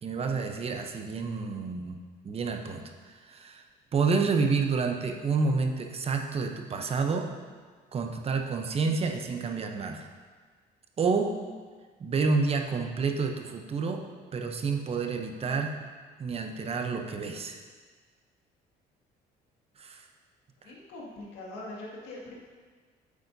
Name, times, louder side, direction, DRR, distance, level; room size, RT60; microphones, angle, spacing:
voice 1, 0.0-3.6 3.9-7.3 7.9-10.1 11.0-11.4 12.0-14.0 14.3-15.7 16.2-17.6 19.8-20.1 20.6-20.7, right 4 dB, 35° right, 4 dB, 0.8 m, -29 dB
voice 2, 20.6-22.3, left 2 dB, 85° left, -4 dB, 2.2 m, -42 dB
8.3 x 8.3 x 2.7 m, 1.5 s
cardioid pair, 110°, 17 cm